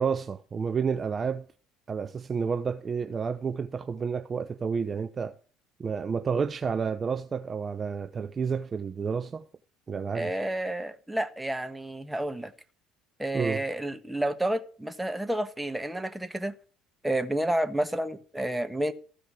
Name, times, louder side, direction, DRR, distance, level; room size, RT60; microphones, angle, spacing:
voice 1, 0.0-1.4 1.9-5.3 5.8-9.5 9.9-10.3 13.3-13.6, right 6 dB, 35° right, 0.7 m, -30 dB
voice 2, 10.1-12.5 13.2-16.5 17.0-18.9, right 1 dB, 5° right, 1.5 m, -30 dB
15.0 x 5.1 x 9.4 m
hypercardioid pair, 60°, 0 cm